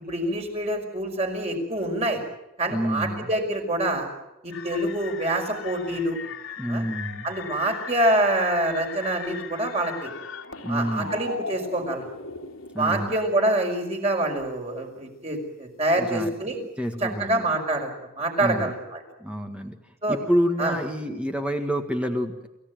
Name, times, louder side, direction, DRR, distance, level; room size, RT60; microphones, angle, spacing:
voice 1, 0.1-2.2 2.6-4.1 4.4-6.2 6.7-6.8 7.2-10.1 10.7-12.1 12.8-16.6 17.0-19.0 20.0-20.2 20.6-20.7, right 1 dB, 30° right, 3 dB, 5.3 m, -26 dB
voice 2, 2.7-3.3 6.6-7.3 10.6-11.1 12.7-13.1 16.0-16.5 16.8-17.5 18.4-18.7 19.2-19.8 20.1-22.5, equal, 5° right, 5 dB, 1.8 m, -28 dB
sound 1, 4.5-12.8, left 5 dB, 80° left, 3.0 m, -38 dB
28.5 x 16.0 x 9.4 m, 0.94 s
head